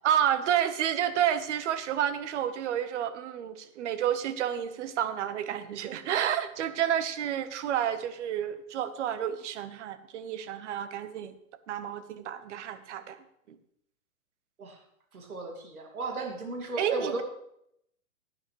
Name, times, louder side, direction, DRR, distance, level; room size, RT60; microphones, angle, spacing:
voice 1, 0.0-11.3 11.7-13.2 16.8-17.2, right 10 dB, 55° right, 11 dB, 1.2 m, -30 dB
voice 2, 15.1-17.2, right 2 dB, 85° right, 2 dB, 2.6 m, -35 dB
17.0 x 9.7 x 3.2 m, 0.74 s
hypercardioid pair, 120°, 42 cm